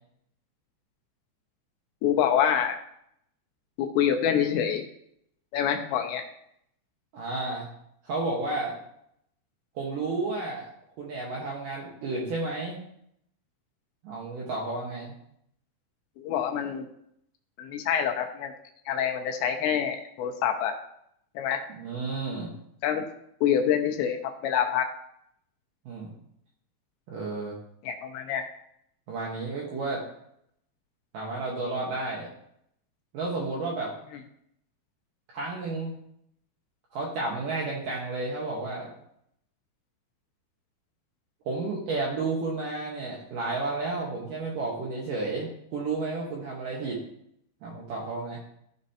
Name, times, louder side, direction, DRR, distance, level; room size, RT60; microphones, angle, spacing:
voice 1, 2.0-2.7 3.8-4.8 5.5-6.2 16.2-16.9 17.6-18.5 18.9-20.7 21.4-21.6 22.8-23.0 23.4-24.9 27.8-28.5, left 9 dB, 80° left, 4 dB, 2.8 m, -26 dB
voice 2, 7.1-7.7 8.0-8.8 9.8-10.6 11.0-12.8 14.0-15.1 21.7-22.5 25.9-26.1 27.1-27.5 29.1-30.0 31.1-32.3 33.1-33.9 35.3-35.9 36.9-38.9 41.5-47.0 47.6-48.4, right 3 dB, 70° right, -3 dB, 2.1 m, -32 dB
14.5 x 5.1 x 2.8 m, 0.72 s
omnidirectional pair, 5.4 m